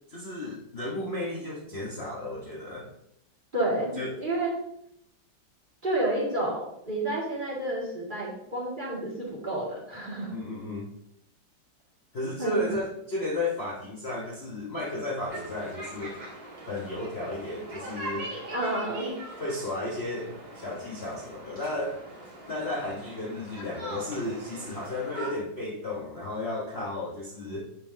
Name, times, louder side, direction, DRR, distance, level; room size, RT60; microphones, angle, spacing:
voice 1, 0.1-2.9 3.9-4.2 10.3-10.9 12.1-16.2 16.7-18.3 19.4-22.0 22.5-27.7, left 2 dB, 40° left, -5 dB, 1.1 m, -33 dB
voice 2, 3.5-3.9 4.2-4.6 5.8-10.3 12.4-12.6 18.5-19.1, right 1 dB, 25° right, -5 dB, 2.2 m, -30 dB
sound 1, 15.3-25.3, right 1 dB, 75° right, 3.0 m, -42 dB
9.4 x 5.5 x 2.7 m, 0.75 s
omnidirectional pair, 2.0 m